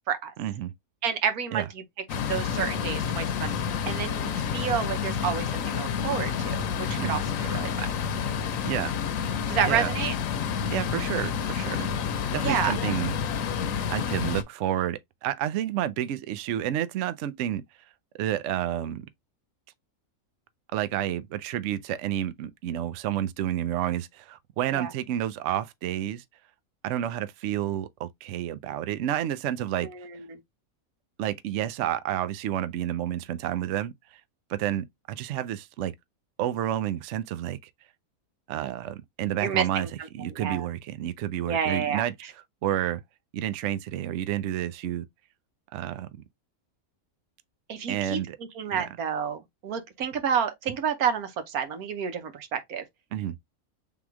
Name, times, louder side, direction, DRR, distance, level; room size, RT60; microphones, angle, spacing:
voice 1, 0.4-0.7 1.5-1.7 7.0-7.2 8.7-8.9 9.6-9.9 10.7-11.9 12.3-13.1 13.9-17.6 18.2-19.0 20.7-26.2 26.8-29.9 31.2-34.2 34.5-35.9 36.4-37.6 38.5-39.9 40.1-42.1 42.6-43.0 43.3-45.0 45.7-46.1 47.9-48.4 48.7-48.9 53.1-53.4, right 11 dB, 65° right, 0.8 m, -30 dB
voice 2, 1.0-1.7 2.2-3.5 3.9-7.9 9.5-10.1 12.4-12.7 24.7-24.9 29.8-30.4 39.4-39.9 40.3-40.7 41.4-42.0 47.7-48.2 48.5-52.8, right 7 dB, 90° right, 1.4 m, -29 dB
sound 1, 2.1-14.4, left 7 dB, 70° left, 1.0 m, -29 dB
3.7 x 2.9 x 4.7 m
omnidirectional pair, 1.5 m